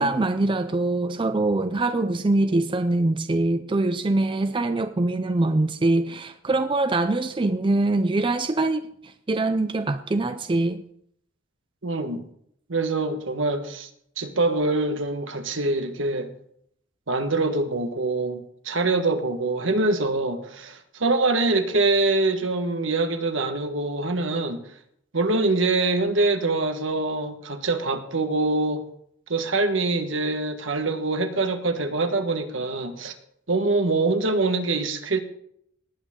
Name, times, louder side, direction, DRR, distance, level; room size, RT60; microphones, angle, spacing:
voice 1, 0.0-10.8, right 2 dB, 25° right, 0.5 m, -23 dB
voice 2, 11.8-12.2 12.7-13.9 14.2-16.3 17.1-24.6 25.1-28.8 29.3-33.1 33.5-35.2, right 2 dB, 70° right, 1.4 m, -24 dB
18.5 x 8.7 x 3.7 m
head